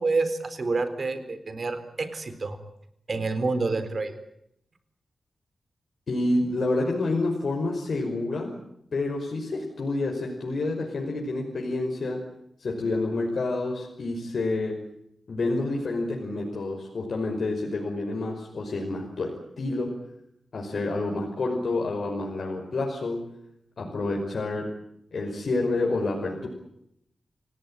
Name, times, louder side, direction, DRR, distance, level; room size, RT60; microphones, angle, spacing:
voice 1, 0.0-2.6 3.1-4.2, right 3 dB, 45° right, 11 dB, 4.0 m, -28 dB
voice 2, 6.1-8.6 8.9-12.2 12.6-14.8 15.3-20.0 20.5-23.3 23.8-24.7 25.1-26.5, left 2 dB, 60° left, 0 dB, 5.5 m, -28 dB
29.0 x 18.0 x 9.0 m, 0.76 s
wide cardioid pair, 135°, 0 cm